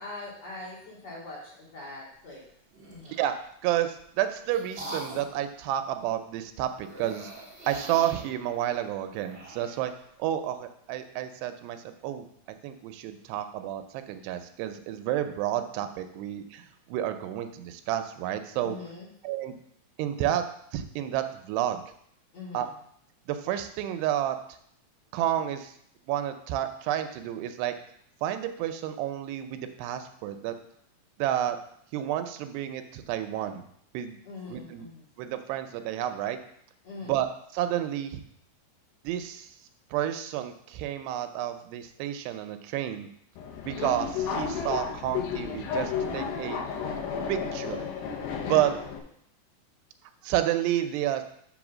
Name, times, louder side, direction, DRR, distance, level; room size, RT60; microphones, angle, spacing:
voice 1, 0.0-2.4 2.9-3.2 18.6-19.1 22.3-22.7 34.2-35.1 36.8-37.2 48.4-48.8, left 3 dB, 45° left, -6 dB, 3.1 m, -42 dB
sound 1, 2.7-3.3 4.0-5.4 6.8-9.8, right 1 dB, 35° right, 1.0 m, -43 dB
voice 2, 3.6-7.3 7.7-9.9 10.2-12.3 12.6-18.8 19.2-19.6 20.0-20.4 20.7-21.8 22.5-22.7 23.3-24.4 25.1-25.7 26.1-27.7 28.2-30.5 31.2-31.6 31.9-33.6 33.9-34.2 34.5-34.9 35.2-36.4 37.1-37.3 37.5-38.2 39.0-39.5 39.9-43.1 43.6-46.6 47.3-47.9 48.4-48.7 50.2-51.2, right 12 dB, 85° right, 8 dB, 2.7 m, -30 dB
Subway metro underground, 43.4-49.0, left 6 dB, 75° left, 2.6 m, -32 dB
6.3 x 5.5 x 6.1 m, 0.69 s
omnidirectional pair, 4.7 m